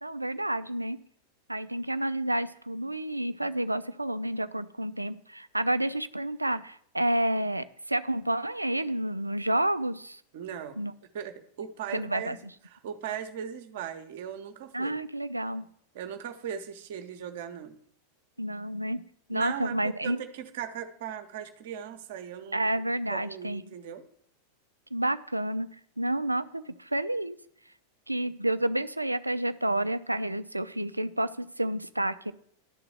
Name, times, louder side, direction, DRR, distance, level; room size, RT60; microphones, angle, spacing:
voice 1, 0.0-1.0 1.5-10.2 10.8-10.9 11.9-12.4 14.7-15.6 18.4-19.0 19.3-20.2 22.5-23.6 24.9-25.7 26.0-27.4 28.1-32.3, right 1 dB, 85° right, 14 dB, 0.4 m, -30 dB
voice 2, 10.3-10.8 11.1-12.4 12.7-15.0 15.9-17.8 19.3-22.7 23.1-24.0, right 8 dB, 55° right, 8 dB, 0.9 m, -38 dB
11.5 x 3.9 x 7.5 m, 0.65 s
figure-of-eight pair, 90°, 0 cm